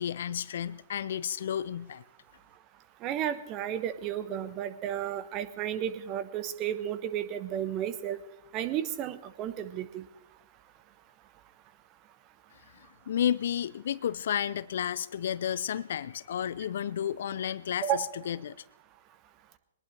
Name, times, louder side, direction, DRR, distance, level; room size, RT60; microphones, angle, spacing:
voice 1, 0.0-2.0 12.7-18.6, left 9 dB, 55° left, 0.5 m, -32 dB
voice 2, 3.0-8.2 8.5-10.0 17.8-18.0, right 10 dB, 30° right, 1.2 m, -32 dB
22.0 x 19.5 x 3.3 m
figure-of-eight pair, 115°, 0 cm